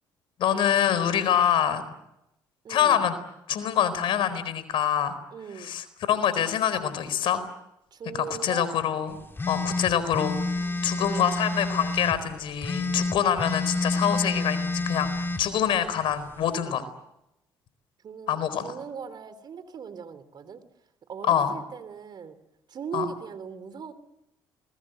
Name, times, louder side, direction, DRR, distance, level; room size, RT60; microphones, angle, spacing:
voice 1, 0.4-1.8 2.7-3.2 3.5-5.1 5.6-7.5 8.1-9.2 9.5-16.8 18.3-18.7 21.3-21.5 22.9-23.1, left 9 dB, 65° left, 14 dB, 4.3 m, -25 dB
voice 2, 2.6-3.1 5.3-5.7 7.9-8.7 10.5-11.3 18.0-20.6 21.1-22.4 22.7-23.9, right 6 dB, 50° right, 13 dB, 3.6 m, -39 dB
sound 1, 9.4-12.2 12.6-15.4, left 2 dB, 25° left, 2.5 m, -29 dB
28.5 x 21.0 x 8.0 m, 0.85 s
supercardioid pair, 70°, 9 cm